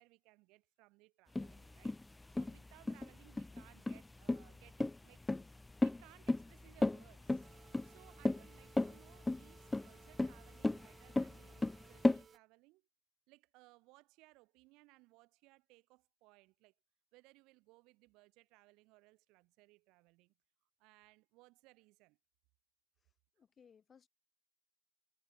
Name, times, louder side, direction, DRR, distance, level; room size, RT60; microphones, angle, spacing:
voice 1, 0.0-2.0 2.3-5.5 5.8-7.6 7.8-12.9 13.3-16.7 17.1-20.4 20.8-22.2, right 23 dB, 80° right, 7.0 m, -65 dB
sound 1, 1.4-12.2, left 2 dB, 20° left, 0.7 m, -35 dB
sound 2, 7.4-12.4, right 6 dB, 50° right, 7.7 m, -62 dB
voice 2, 23.0-24.1, left 7 dB, 55° left, 4.3 m, -65 dB
hypercardioid pair, 45°, 0 cm